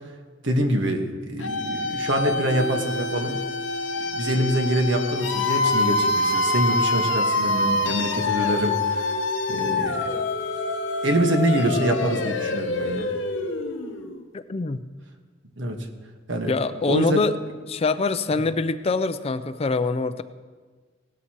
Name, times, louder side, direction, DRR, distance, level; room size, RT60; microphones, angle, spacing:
voice 1, 0.4-3.4 4.1-9.1 9.5-10.1 11.0-13.1 15.6-15.8 16.3-16.5 16.9-17.2, equal, 65° right, 4 dB, 1.4 m, -25 dB
sound 1, 1.4-14.2, left 2 dB, 70° left, 0.9 m, -26 dB
voice 2, 14.3-14.8 16.5-17.4 17.7-20.2, left 3 dB, 30° left, 12 dB, 0.4 m, -24 dB
18.0 x 12.5 x 3.0 m, 1.4 s
head